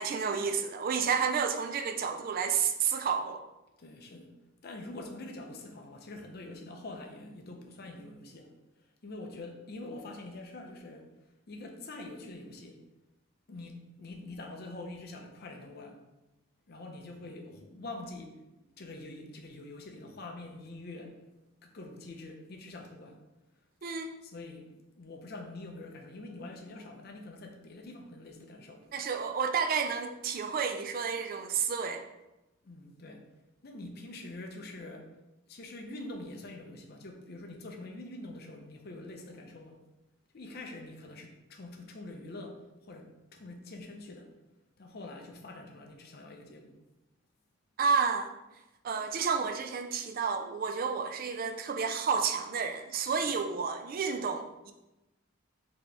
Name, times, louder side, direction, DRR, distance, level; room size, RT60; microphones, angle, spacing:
voice 1, 0.0-3.4 23.8-24.1 28.9-32.0 47.8-48.3 48.8-54.7, right 6 dB, 45° right, 5 dB, 0.3 m, -30 dB
voice 2, 3.8-4.3 4.6-8.5 9.0-11.1 11.5-12.8 13.5-16.0 16.7-18.4 18.8-21.2 21.6-23.2 24.2-28.8 32.6-33.2 33.6-35.1 35.5-39.8 40.3-44.3 44.8-46.7 53.2-53.4, left 2 dB, 45° left, 3 dB, 0.5 m, -45 dB
4.3 x 2.8 x 3.2 m, 0.98 s
head